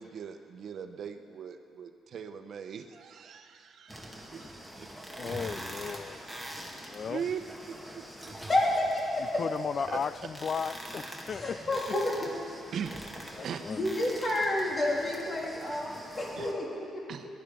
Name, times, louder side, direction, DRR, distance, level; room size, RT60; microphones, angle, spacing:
voice 1, 0.0-5.3 7.1-8.4 9.9-10.0 12.7-13.0 13.4-13.7 16.4-16.5 17.1-17.3, right 7 dB, 65° right, 8 dB, 0.9 m, -40 dB
sound 1, 3.9-16.5, equal, 5° left, 2.1 m, -44 dB
voice 2, 5.2-6.2 6.9-7.2 9.4-11.6 13.4-13.8, left 6 dB, 50° left, 16 dB, 0.4 m, -35 dB
voice 3, 8.5-9.4 11.3-12.3 13.7-15.9 16.2-16.7 16.9-17.0, left 1 dB, 35° left, -3 dB, 3.3 m, -29 dB
18.0 x 11.5 x 5.4 m, 2.7 s
cardioid pair, 90°, 0 cm